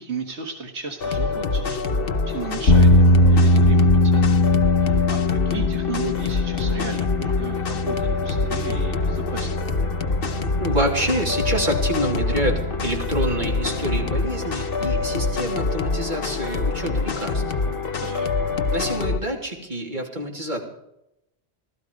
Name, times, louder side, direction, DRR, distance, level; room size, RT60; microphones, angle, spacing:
voice 1, 0.0-4.3 4.8-9.6 18.0-18.3, right 4 dB, 80° right, 4 dB, 1.8 m, -35 dB
sound 1, 0.8-19.0, right 2 dB, 15° right, 5.2 m, -48 dB
sound 2, 1.0-19.2, left 4 dB, 55° left, 1.2 m, -26 dB
sound 3, 2.7-15.2, left 1 dB, 85° left, 1.7 m, -21 dB
voice 2, 10.6-17.4 18.7-20.6, right 1 dB, 45° right, 0 dB, 3.1 m, -27 dB
17.0 x 13.0 x 5.2 m, 0.84 s
omnidirectional pair, 1.1 m